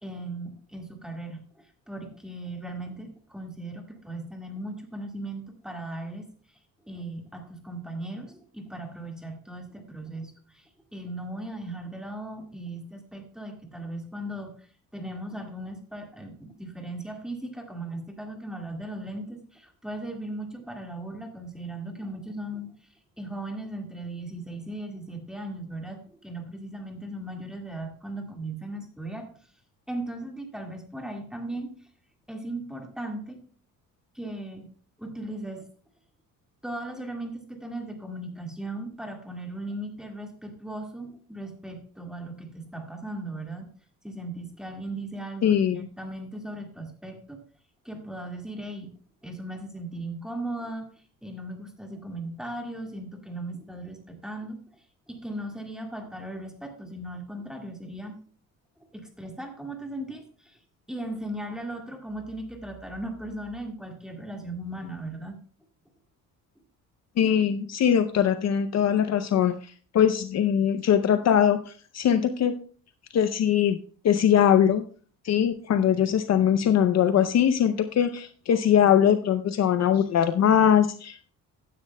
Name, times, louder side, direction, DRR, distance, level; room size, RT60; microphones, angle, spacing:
voice 1, 0.0-6.3 6.9-14.7 14.9-22.7 23.2-29.3 29.9-31.7 32.3-33.4 34.1-34.7 35.0-35.7 36.6-43.7 44.0-47.4 47.8-48.9 49.2-50.9 51.2-58.2 58.9-60.6 60.9-65.3, right 1 dB, ahead, 2 dB, 1.8 m, -37 dB
voice 2, 45.4-45.9 67.2-69.5 69.9-72.5 73.1-73.8 74.0-74.8 75.2-81.3, left 9 dB, 50° left, 9 dB, 0.6 m, -21 dB
15.0 x 9.8 x 2.2 m, 0.42 s
cardioid pair, 145°, 35 cm